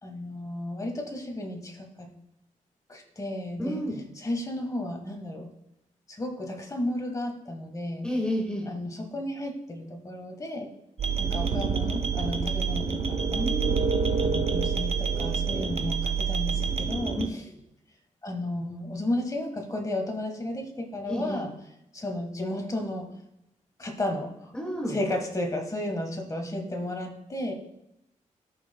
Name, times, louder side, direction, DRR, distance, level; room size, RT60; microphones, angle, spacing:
voice 1, 0.0-2.1 2.9-3.8 4.2-5.5 6.1-8.1 8.7-10.7 11.2-13.7 14.2-17.4 18.2-21.5 21.9-23.1 23.8-24.5 24.9-27.5, left 1 dB, 25° left, 3 dB, 1.4 m, -33 dB
voice 2, 3.6-4.0 8.0-8.7 13.3-13.9 17.2-17.3 21.1-21.5 24.5-25.0, equal, 5° left, 3 dB, 1.0 m, -30 dB
sound 1, 11.0-17.3, right 5 dB, 50° right, 0.6 m, -27 dB
14.0 x 5.5 x 2.2 m, 0.85 s
wide cardioid pair, 120°, 14 cm